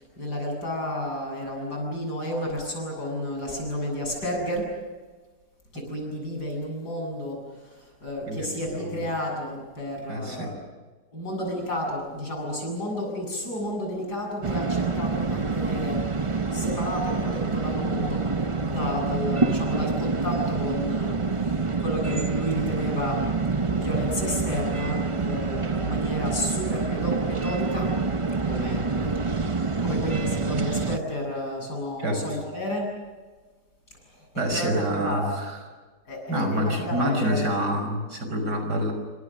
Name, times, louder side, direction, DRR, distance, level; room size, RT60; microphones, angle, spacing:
voice 1, 0.2-4.7 5.7-10.6 11.1-18.2 18.7-23.2 23.7-27.9 28.4-28.9 29.8-33.0 34.0-34.3 34.5-35.4 36.1-37.5, equal, 70° left, 1 dB, 8.7 m, -31 dB
voice 2, 8.3-9.0 10.1-10.6 32.0-32.2 34.4-35.6 36.3-38.9, equal, 75° right, 5 dB, 6.2 m, -27 dB
sound 1, 14.4-31.0, right 4 dB, 25° right, 0.7 m, -27 dB
29.0 x 25.0 x 6.4 m, 1.3 s
omnidirectional pair, 1.8 m